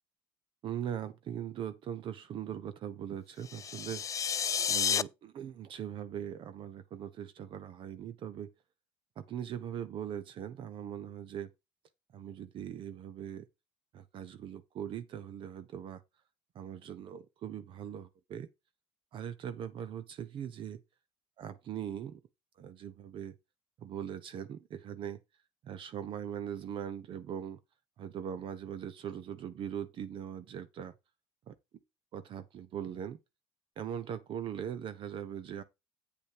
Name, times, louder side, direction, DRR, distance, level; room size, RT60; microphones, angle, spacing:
voice 1, 0.6-4.1 4.7-8.5 9.2-11.5 12.1-13.5 13.9-16.0 16.5-18.5 19.1-20.8 21.4-22.2 22.6-23.3 23.8-25.2 25.6-27.6 28.0-30.9 31.5-31.6 32.1-33.2 33.8-35.6, right 9 dB, 50° right, 1.0 m, -40 dB
sound 1, 3.4-5.0, left 7 dB, 30° left, 0.5 m, -31 dB
8.7 x 5.2 x 5.1 m
supercardioid pair, 80°, 11 cm